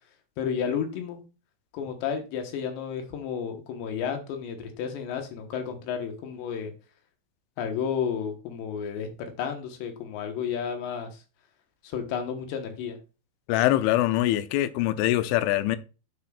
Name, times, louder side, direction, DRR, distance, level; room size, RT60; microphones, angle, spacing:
voice 1, 0.4-1.2 1.7-6.7 7.6-11.1 11.8-13.0, left 7 dB, 75° left, 3.3 m, -32 dB
voice 2, 13.5-15.8, left 14 dB, 90° left, 3.0 m, -23 dB
9.5 x 7.4 x 2.4 m
omnidirectional pair, 5.4 m